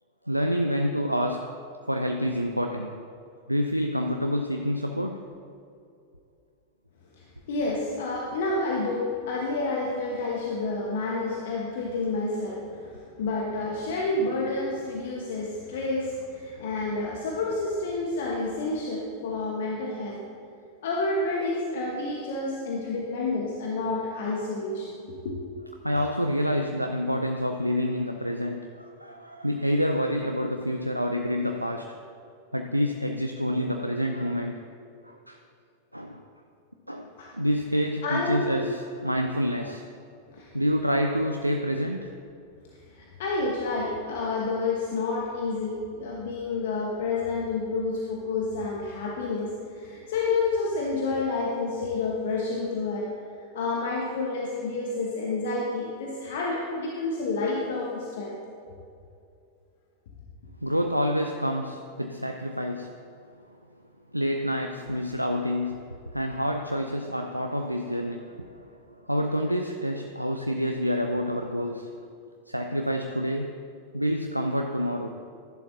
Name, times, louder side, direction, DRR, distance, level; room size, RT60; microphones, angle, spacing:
voice 1, 0.3-1.5 1.9-3.0 3.5-5.2 25.8-32.0 32.5-34.6 35.0-35.4 35.9-36.2 36.9-39.9 40.5-42.1 60.6-62.9 64.1-65.8 66.1-68.6 69.0-71.9 72.5-73.6 73.9-75.1, equal, 90° right, 3 dB, 0.4 m, -28 dB
voice 2, 7.1-20.2 20.8-25.4 37.2-37.3 38.0-38.6 40.3-40.5 42.9-53.1 53.5-58.4, left 3 dB, 55° left, -3 dB, 1.2 m, -29 dB
12.5 x 11.0 x 2.8 m, 2.5 s
figure-of-eight pair, 90°, 0 cm